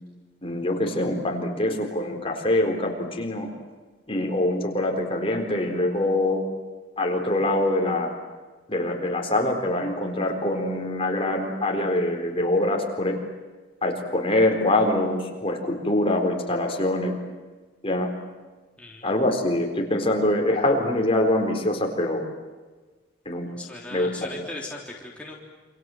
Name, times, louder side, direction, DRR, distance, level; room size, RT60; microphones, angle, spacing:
voice 1, 0.4-3.5 4.1-6.5 7.0-8.1 8.7-13.2 13.8-17.1 17.8-18.1 19.0-22.2 23.3-23.5 23.9-24.4, left 1 dB, 30° left, 2 dB, 4.1 m, -24 dB
voice 2, 18.8-19.2 23.5-25.3, left 2 dB, 5° left, -3 dB, 3.3 m, -38 dB
28.5 x 27.0 x 7.8 m, 1.3 s
head